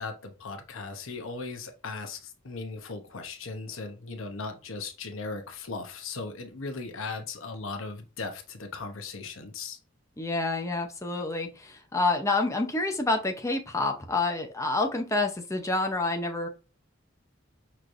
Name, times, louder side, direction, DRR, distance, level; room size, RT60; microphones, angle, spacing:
voice 1, 0.0-9.8, left 4 dB, 85° left, 5 dB, 0.9 m, -38 dB
voice 2, 10.2-16.5, left 2 dB, 15° left, 3 dB, 0.7 m, -28 dB
5.8 x 3.2 x 2.6 m, 0.32 s
head